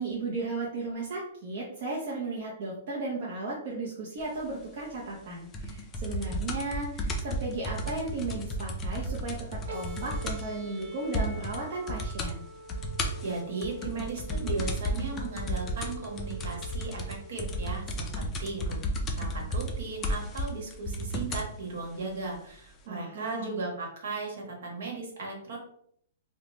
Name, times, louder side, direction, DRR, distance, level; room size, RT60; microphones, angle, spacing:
voice 1, 0.0-12.4 22.9-23.6, right 2 dB, 45° right, -4 dB, 0.6 m, -35 dB
sound 1, 5.5-10.6 10.8-10.9 11.1-11.6 11.9-12.3 12.7-21.5 22.3-22.4, equal, 15° left, 0.3 m, -33 dB
sound 2, 9.7-17.7, equal, 85° right, 0.8 m, -46 dB
voice 2, 13.2-18.8 19.2-25.6, right 3 dB, 60° right, -1 dB, 1.1 m, -36 dB
2.8 x 2.1 x 3.1 m, 0.66 s
hypercardioid pair, 170°, 0 cm